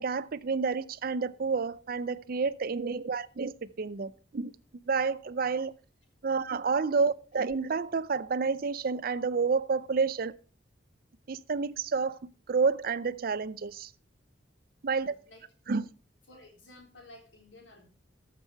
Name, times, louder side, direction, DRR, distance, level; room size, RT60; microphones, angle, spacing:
voice 1, 0.0-4.5 4.9-5.7 6.2-10.4 11.3-12.2 12.5-13.9 14.8-15.1 15.7-15.9, right 4 dB, 50° right, 0.5 m, -29 dB
voice 2, 14.9-15.4 16.3-17.9, left 1 dB, 75° left, 3.6 m, -54 dB
13.5 x 6.1 x 4.5 m
head